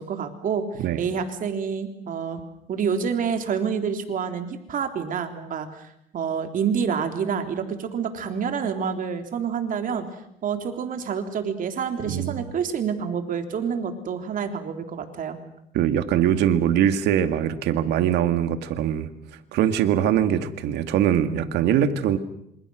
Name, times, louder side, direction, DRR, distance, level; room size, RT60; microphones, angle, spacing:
voice 1, 0.0-0.6 1.0-2.4 2.7-10.1 10.4-15.4, right 7 dB, 55° right, 6 dB, 3.4 m, -28 dB
voice 2, 12.1-12.5 15.7-19.1 19.5-22.2, right 10 dB, 80° right, 9 dB, 2.2 m, -22 dB
27.0 x 26.5 x 6.4 m, 0.77 s
cardioid pair, 110°, 17 cm